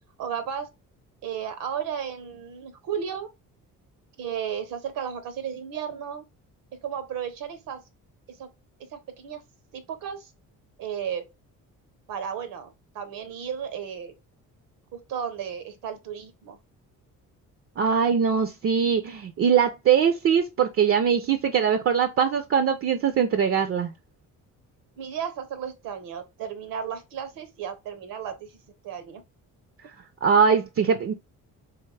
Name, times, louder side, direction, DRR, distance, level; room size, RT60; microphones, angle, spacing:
voice 1, 0.2-0.7 1.2-3.3 4.2-6.2 6.8-7.8 8.3-8.5 8.8-9.4 9.7-10.3 10.8-11.2 12.1-14.1 14.9-16.6 25.0-29.2, right 8 dB, 85° right, 0.9 m, -34 dB
voice 2, 17.8-23.9 30.2-31.1, right 7 dB, 45° right, 0.5 m, -22 dB
3.4 x 3.0 x 3.2 m
cardioid pair, 110°, 32 cm